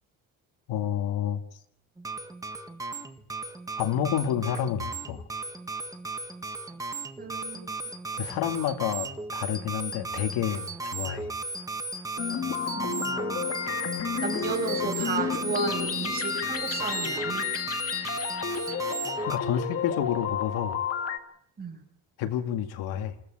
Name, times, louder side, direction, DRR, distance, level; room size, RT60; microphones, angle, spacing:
voice 1, 0.7-1.4 3.8-5.2 8.2-11.3 19.3-20.8 22.2-23.1, left 10 dB, 85° left, 8 dB, 2.2 m, -29 dB
sound 1, 2.0-19.4, right 3 dB, 10° right, 1.5 m, -35 dB
voice 2, 7.2-7.9 12.8-13.5 14.2-17.4 21.6-21.7, right 3 dB, 25° right, 3 dB, 6.2 m, -33 dB
sound 2, 12.2-21.2, left 7 dB, 40° left, 2.0 m, -31 dB
27.5 x 15.0 x 8.9 m, 0.70 s
cardioid pair, 140°, 36 cm